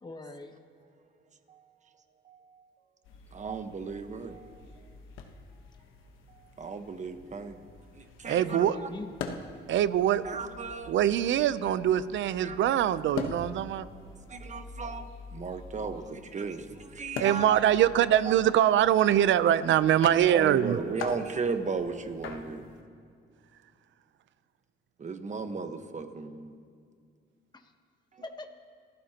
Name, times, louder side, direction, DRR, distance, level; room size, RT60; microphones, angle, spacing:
voice 1, 0.0-0.6 8.2-9.1 27.5-27.7 28.2-28.5, left 2 dB, 20° left, 5 dB, 1.2 m, -42 dB
voice 2, 2.2-2.6 3.3-4.5 6.6-7.7 7.9-8.9 9.6-9.7 10.2-10.9 12.4-12.6 14.3-17.6 18.2-18.4 20.0-22.7 25.0-26.5, right 4 dB, 35° right, 7 dB, 1.3 m, -36 dB
sound 1, 3.0-22.8, left 5 dB, 90° left, 1.2 m, -44 dB
voice 3, 8.3-8.7 9.7-10.2 10.9-13.9 17.2-20.8, right 11 dB, 70° right, 15 dB, 0.6 m, -23 dB
28.0 x 15.0 x 3.0 m, 2.3 s
cardioid pair, 90°, 20 cm